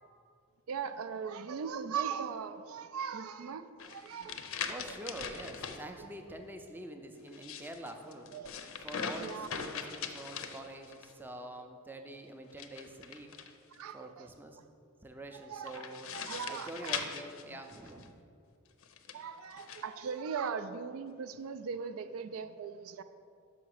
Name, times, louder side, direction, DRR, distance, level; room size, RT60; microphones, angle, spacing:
voice 1, 0.7-4.4 6.0-6.1 8.3-8.5 9.2-9.5 13.7-14.3 15.5-15.8 16.1-17.0 17.5-17.6 19.1-23.0, right 6 dB, 70° right, 11 dB, 0.4 m, -39 dB
sound 1, 3.8-5.8 7.2-11.1 12.5-13.8 15.7-18.1 18.8-19.8, left 6 dB, 65° left, 0.6 m, -41 dB
voice 2, 4.7-8.3 8.8-13.4 13.9-14.6 15.0-16.1 16.5-18.2, right 1 dB, 10° right, 4 dB, 0.4 m, -46 dB
5.9 x 5.8 x 6.4 m, 2.3 s
head